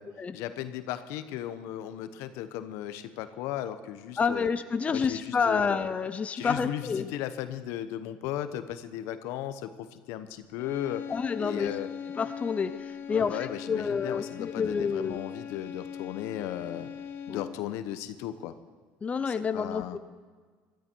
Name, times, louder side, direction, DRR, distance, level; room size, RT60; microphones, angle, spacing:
voice 1, 0.3-4.5 4.9-5.9 6.4-11.0 11.4-11.9 13.1-16.9 17.3-18.5 19.3-20.0, left 12 dB, 75° left, 11 dB, 1.1 m, -36 dB
voice 2, 4.2-7.1 11.1-11.7 12.2-15.2 17.3-17.4 19.0-20.0, left 5 dB, 25° left, 10 dB, 0.7 m, -29 dB
sound 1, 10.6-17.7, left 7 dB, 50° left, 1.0 m, -40 dB
17.0 x 13.0 x 4.6 m, 1.5 s
supercardioid pair, 95°, 5 cm